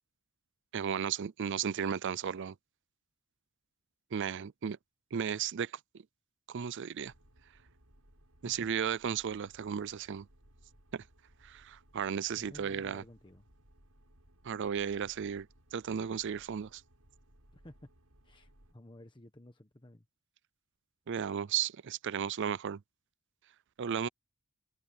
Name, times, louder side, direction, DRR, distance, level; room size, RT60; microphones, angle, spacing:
voice 1, 0.7-2.5 4.1-4.8 5.1-5.7 6.5-7.1 8.4-10.3 10.9-11.0 11.4-13.0 14.4-15.5 15.7-16.8 21.1-22.8 23.8-24.1, right 7 dB, 55° right, 0.4 m, -34 dB
sound 1, 7.0-18.7, equal, 75° right, 6.7 m, -63 dB
voice 2, 12.3-13.5 17.5-17.9 18.2-20.1, left 1 dB, 20° left, 1.1 m, -54 dB
head